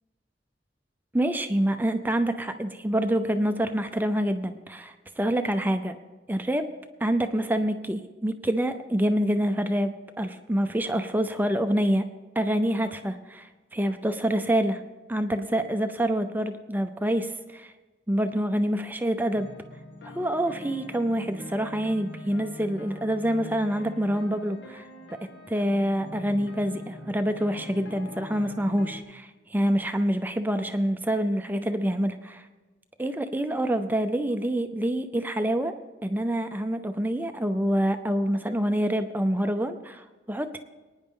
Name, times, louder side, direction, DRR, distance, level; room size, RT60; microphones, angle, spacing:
voice 1, 1.1-5.9 6.3-6.7 7.0-12.1 12.4-14.8 15.1-17.7 18.1-19.5 20.0-24.9 25.5-32.5 33.0-35.7 36.0-40.6, right 1 dB, 10° right, 8 dB, 0.5 m, -26 dB
sound 1, 19.3-29.0, left 1 dB, 70° left, 1.7 m, -43 dB
22.5 x 9.7 x 3.8 m, 1.2 s
head